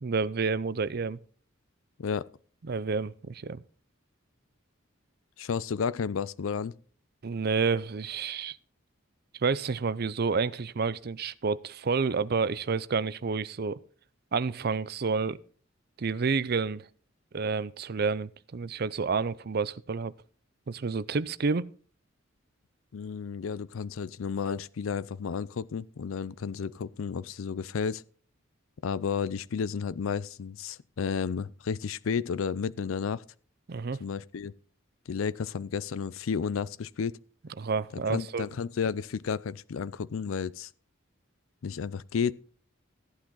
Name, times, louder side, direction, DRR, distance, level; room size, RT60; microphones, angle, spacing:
voice 1, 0.0-1.2 2.6-3.6 7.2-8.6 9.4-13.8 14.3-15.4 16.0-16.9 17.3-20.1 20.7-21.7 33.7-34.0 37.6-38.5, right 4 dB, 50° right, 0.5 m, -29 dB
voice 2, 5.4-6.7 22.9-28.0 28.8-33.2 34.0-34.5 35.1-37.2 37.9-40.7 41.6-42.3, left 6 dB, 75° left, 0.4 m, -32 dB
14.5 x 8.8 x 3.8 m
head